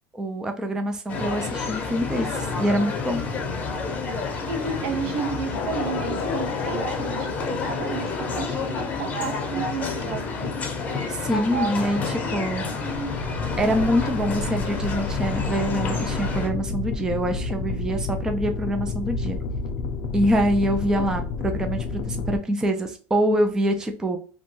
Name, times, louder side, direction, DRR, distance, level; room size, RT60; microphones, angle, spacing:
voice 1, 0.1-3.2 11.1-13.0 13.6-19.4 20.1-24.2, equal, 10° right, 0.3 m, -25 dB
sound 1, 1.1-16.5, left 4 dB, 25° left, 0.7 m, -29 dB
voice 2, 4.5-10.5 21.0-21.1, right 5 dB, 65° right, 0.6 m, -32 dB
sound 2, 5.5-9.4 12.8-22.4, left 4 dB, 60° left, 0.6 m, -31 dB
3.0 x 2.2 x 3.0 m
supercardioid pair, 145°, 6 cm